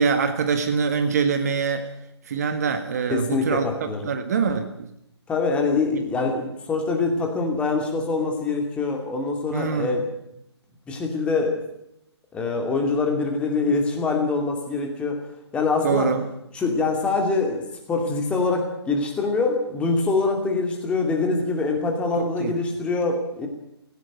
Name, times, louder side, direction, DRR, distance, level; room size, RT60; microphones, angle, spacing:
voice 1, 0.0-1.9 2.3-3.7 4.0-4.9 5.9-6.0 9.5-10.0 15.8-16.2 22.2-22.5, right 5 dB, 35° right, 8 dB, 1.7 m, -24 dB
voice 2, 3.1-4.1 5.3-10.1 10.9-11.6 12.3-15.2 15.5-16.1 16.5-17.6 17.9-23.5, left 3 dB, 10° left, 3 dB, 2.4 m, -24 dB
17.0 x 16.5 x 9.3 m, 0.81 s
figure-of-eight pair, 140°, 14 cm